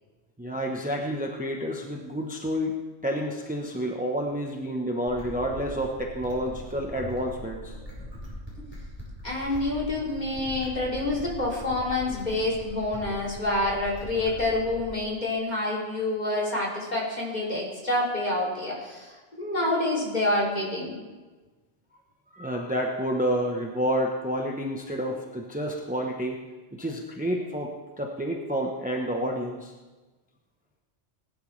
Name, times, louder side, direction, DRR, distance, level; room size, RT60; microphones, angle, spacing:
voice 1, 0.4-7.8 9.5-9.6 22.3-26.4 26.7-29.7, equal, 10° right, 0 dB, 0.9 m, -29 dB
sound 1, 5.1-15.1, equal, 10° left, 5.1 m, -41 dB
voice 2, 9.2-21.0, left 2 dB, 40° left, -4 dB, 3.2 m, -27 dB
19.5 x 11.0 x 3.3 m, 1.2 s
omnidirectional pair, 1.2 m